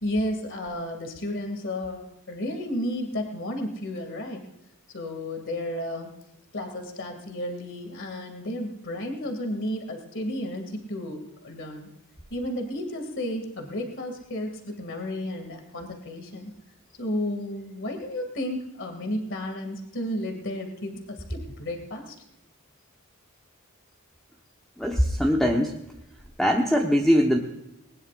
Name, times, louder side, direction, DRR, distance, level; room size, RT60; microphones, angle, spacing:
voice 1, 0.0-4.4 4.9-6.1 6.5-11.9 12.3-16.5 17.0-20.9 21.3-22.1, left 1 dB, 55° left, 4 dB, 2.4 m, -32 dB
voice 2, 24.8-25.8 26.4-27.4, equal, ahead, 0 dB, 1.2 m, -21 dB
20.5 x 20.0 x 2.5 m, 0.88 s
head